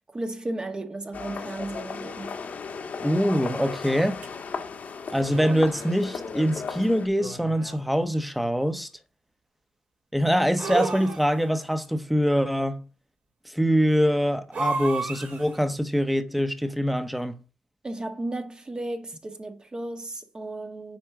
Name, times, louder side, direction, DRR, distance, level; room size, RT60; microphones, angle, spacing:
voice 1, 0.1-2.4 17.8-21.0, right 2 dB, 30° right, 1.5 m, -34 dB
sound 1, 1.1-7.1, left 5 dB, 60° left, 1.5 m, -36 dB
voice 2, 3.0-4.2 5.1-8.9 10.1-12.8 13.4-17.4, equal, ahead, 1.1 m, -24 dB
sound 2, 4.2-4.3 5.2-6.0 7.2-7.9 10.6-11.6 14.5-15.6, right 4 dB, 60° right, 3.4 m, -32 dB
7.6 x 4.6 x 4.8 m
cardioid pair, 65°, 3 cm